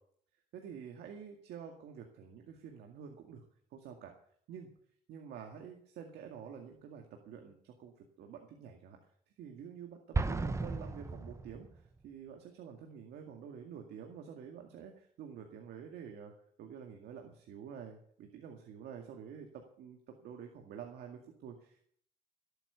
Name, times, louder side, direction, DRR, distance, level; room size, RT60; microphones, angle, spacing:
voice 1, 0.5-3.4 3.7-4.1 4.5-4.7 5.1-9.0 9.4-10.0 10.2-11.7 12.0-16.3 16.6-21.9, right 7 dB, 75° right, 3 dB, 2.2 m, -48 dB
Explosion, 10.1-12.0, right 3 dB, 15° right, 0.9 m, -35 dB
16.5 x 9.1 x 7.0 m, 0.63 s
cardioid pair, 110°, 17 cm